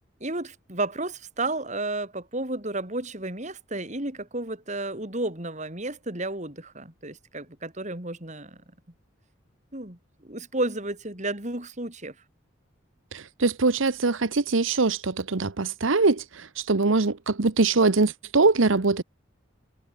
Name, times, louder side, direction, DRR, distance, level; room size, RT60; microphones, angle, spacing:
voice 1, 0.2-8.6 9.7-12.2, right 2 dB, 35° right, 5.0 m, -32 dB
voice 2, 13.1-19.0, right 3 dB, 85° right, 1.1 m, -23 dB
head